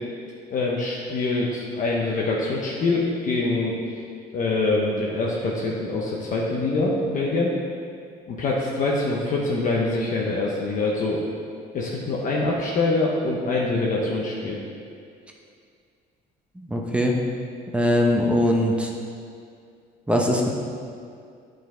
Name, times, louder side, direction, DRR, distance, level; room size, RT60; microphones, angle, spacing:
voice 1, 0.5-3.8 4.3-7.5 8.3-11.2 11.7-14.6, left 2 dB, 50° left, -3 dB, 0.9 m, -24 dB
voice 2, 16.6-17.2 17.7-18.9 20.1-20.5, left 1 dB, 5° right, -1 dB, 0.8 m, -21 dB
9.1 x 5.2 x 3.8 m, 2.3 s
cardioid pair, 110°, 17 cm